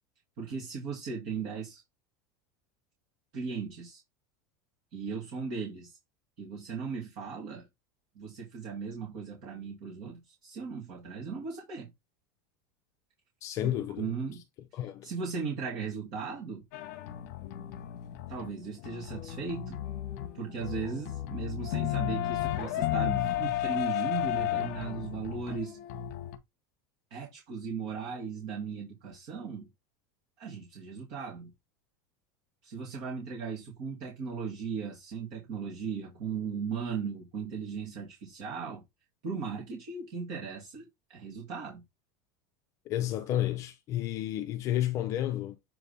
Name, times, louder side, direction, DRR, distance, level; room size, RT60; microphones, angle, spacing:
voice 1, 0.4-1.8 3.3-4.0 4.9-6.0 6.4-7.7 8.1-11.9 13.6-14.4 15.0-16.6 18.3-19.8 20.3-25.8 27.1-29.7 30.4-31.5 32.6-38.8 39.2-41.8, right 5 dB, 45° right, 2.2 m, -37 dB
voice 2, 13.4-14.0 14.7-15.1 42.9-45.6, left 12 dB, 30° left, 0.5 m, -31 dB
sound 1, 16.7-26.4, left 13 dB, 55° left, 1.0 m, -33 dB
7.4 x 3.5 x 4.1 m
supercardioid pair, 180°, 11 cm